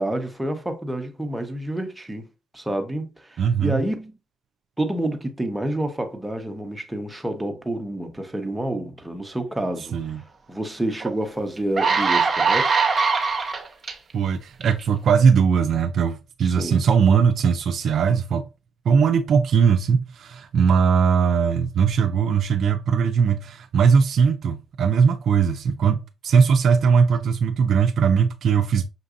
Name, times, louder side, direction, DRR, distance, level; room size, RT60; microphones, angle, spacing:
voice 1, 0.0-2.3 2.5-4.2 4.8-10.2 10.5-12.8 16.4-16.8, right 1 dB, 10° right, 0.9 m, -28 dB
voice 2, 3.4-3.8 9.9-10.2 14.1-18.4 18.9-28.8, right 6 dB, 65° right, 0.4 m, -19 dB
sound 1, 11.0-11.1 11.6-13.9 14.6-14.8, right 5 dB, 40° right, 0.8 m, -21 dB
5.8 x 2.6 x 2.5 m
cardioid pair, 90°, 0 cm